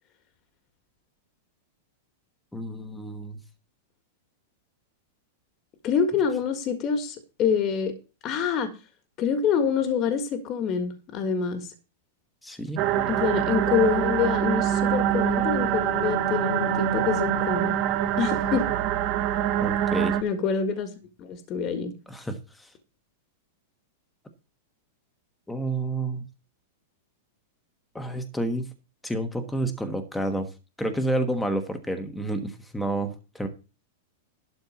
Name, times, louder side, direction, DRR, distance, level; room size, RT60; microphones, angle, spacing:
voice 1, 2.5-3.4 12.4-12.8 19.6-20.2 22.1-22.7 25.5-26.2 27.9-28.7 29.0-30.5 30.8-33.5, right 1 dB, 5° left, 6 dB, 1.3 m, -29 dB
voice 2, 5.8-7.9 8.2-8.7 9.2-11.7 13.1-17.8 18.2-18.8 20.2-20.9 21.2-21.9, left 6 dB, 30° left, 8 dB, 1.7 m, -26 dB
sound 1, 12.8-20.2, right 10 dB, 40° right, 1.3 m, -25 dB
12.0 x 4.4 x 7.1 m, 0.31 s
supercardioid pair, 150°, 0 cm